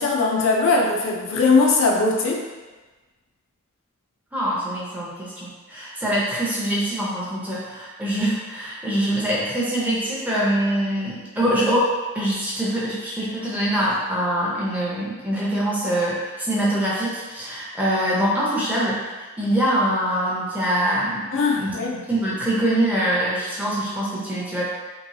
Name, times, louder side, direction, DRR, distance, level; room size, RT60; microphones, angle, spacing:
voice 1, 0.0-2.4 21.3-22.0, left 3 dB, 60° left, -1 dB, 0.4 m, -20 dB
voice 2, 4.3-11.9 12.1-19.0 19.4-21.3 21.6-24.7, right 1 dB, 5° right, -7 dB, 0.6 m, -24 dB
3.0 x 2.9 x 2.6 m, 1.3 s
head